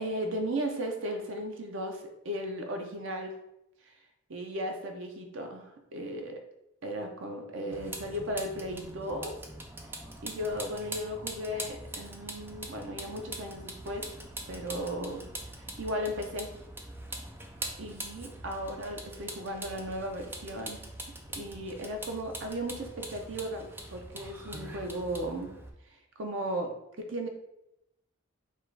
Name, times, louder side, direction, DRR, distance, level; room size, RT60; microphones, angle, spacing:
voice 1, 0.0-3.4 4.3-6.4 6.8-9.3 10.2-14.1 14.5-15.2 15.6-16.5 17.8-20.8 21.4-25.5 26.2-27.3, equal, 80° right, 3 dB, 0.8 m, -36 dB
Vehicle, 7.7-25.7, right 1 dB, 10° right, 0.4 m, -43 dB
4.5 x 2.4 x 4.6 m, 0.83 s
head